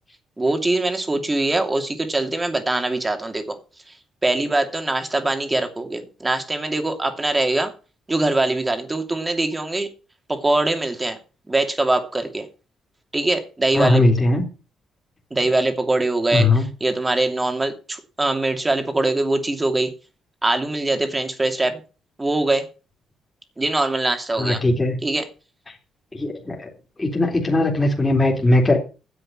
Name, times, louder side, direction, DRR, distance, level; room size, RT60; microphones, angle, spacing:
voice 1, 0.4-3.6 4.2-7.7 8.1-9.9 10.3-11.2 11.5-12.5 13.1-14.0 15.3-19.9 20.4-21.8 22.2-22.7 23.6-24.6 25.0-25.3, right 2 dB, 20° right, 6 dB, 2.6 m, -22 dB
voice 2, 13.7-14.4 16.3-16.7 24.4-25.0 26.1-26.7 27.0-28.8, left 2 dB, 20° left, 0 dB, 3.7 m, -19 dB
10.0 x 7.7 x 7.6 m, 0.35 s
cardioid pair, 90°, 0 cm